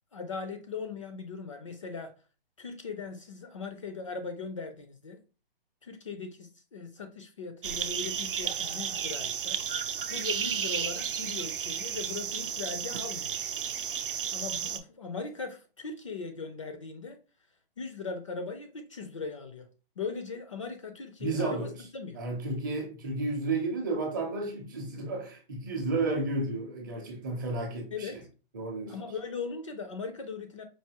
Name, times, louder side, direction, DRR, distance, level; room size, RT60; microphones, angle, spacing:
voice 1, 0.1-2.1 2.6-5.2 5.8-9.6 10.1-13.4 14.3-17.2 17.8-19.7 20.0-22.2 27.9-28.2 28.9-30.6, left 4 dB, 35° left, 0.4 m, -39 dB
sound 1, 7.6-14.8, right 8 dB, 65° right, 0.6 m, -33 dB
voice 2, 21.2-21.7 22.1-28.2 28.5-29.0, right 3 dB, 20° right, 0.6 m, -32 dB
4.7 x 2.6 x 2.8 m
hypercardioid pair, 160°, 29 cm